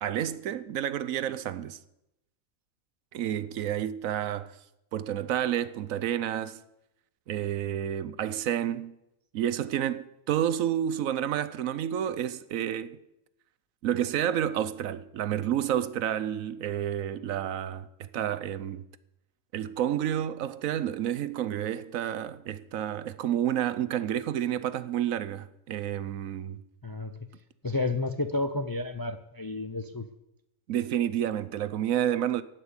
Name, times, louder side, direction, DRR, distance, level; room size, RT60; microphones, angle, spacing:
voice 1, 0.0-1.8 3.1-4.6 4.9-6.6 7.3-8.9 9.3-13.0 13.8-18.9 19.5-26.6 30.7-32.4, right 10 dB, 85° right, 1.1 m, -30 dB
voice 2, 27.6-30.1, left 2 dB, 30° left, 0.3 m, -31 dB
15.0 x 6.0 x 9.8 m
omnidirectional pair, 1.4 m